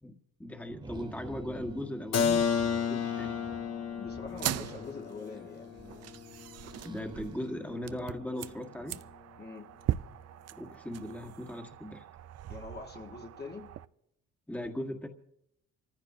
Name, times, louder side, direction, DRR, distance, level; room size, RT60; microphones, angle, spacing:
voice 1, 0.0-3.4 6.8-9.0 10.5-12.0 14.5-15.1, left 1 dB, 5° left, 1.6 m, -39 dB
sound 1, 0.7-9.0, right 2 dB, 15° right, 0.8 m, -49 dB
Keyboard (musical), 2.1-7.7, left 7 dB, 55° left, 1.0 m, -33 dB
voice 2, 4.0-5.8 9.4-9.7 12.5-13.7, left 4 dB, 35° left, 1.6 m, -44 dB
sound 2, 4.3-13.9, right 12 dB, 55° right, 0.5 m, -40 dB
28.0 x 15.0 x 2.7 m
cardioid pair, 90°, 30 cm